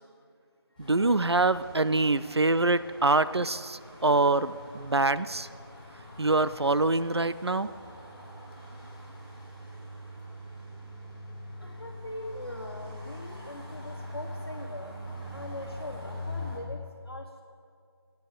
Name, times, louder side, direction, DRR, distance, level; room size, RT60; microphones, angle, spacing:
sound 1, 0.8-16.6, left 1 dB, 5° left, 3.7 m, -43 dB
voice 1, 0.8-5.5 6.2-7.7, right 2 dB, 75° right, 15 dB, 0.5 m, -25 dB
voice 2, 11.6-14.9 15.3-17.4, left 1 dB, 55° left, -3 dB, 1.4 m, -41 dB
16.0 x 9.2 x 5.1 m, 2.3 s
figure-of-eight pair, 170°, 14 cm